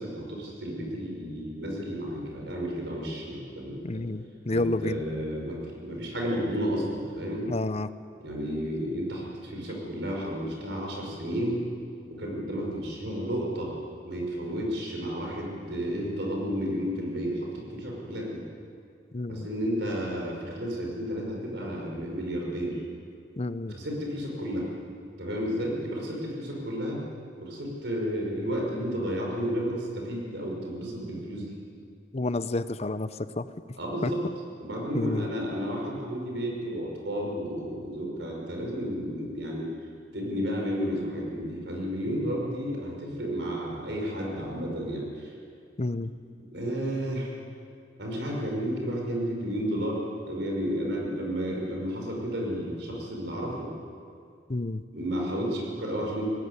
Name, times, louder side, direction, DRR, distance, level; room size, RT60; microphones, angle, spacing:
voice 1, 0.0-4.0 4.5-7.5 8.2-11.7 12.1-13.7 14.0-18.4 19.3-22.8 23.7-24.7 25.2-27.0 27.4-31.5 33.8-34.2 34.6-39.7 40.1-45.3 46.5-47.3 48.0-50.0 50.3-53.7 54.9-56.2, equal, 70° right, -1 dB, 5.5 m, -32 dB
voice 2, 3.8-5.0 7.5-7.9 19.1-19.5 23.4-23.7 32.1-33.5 34.0-34.1 34.9-35.3 45.8-46.1 54.5-54.8, left 2 dB, 35° left, 13 dB, 0.7 m, -29 dB
18.5 x 16.5 x 9.8 m, 2.3 s
head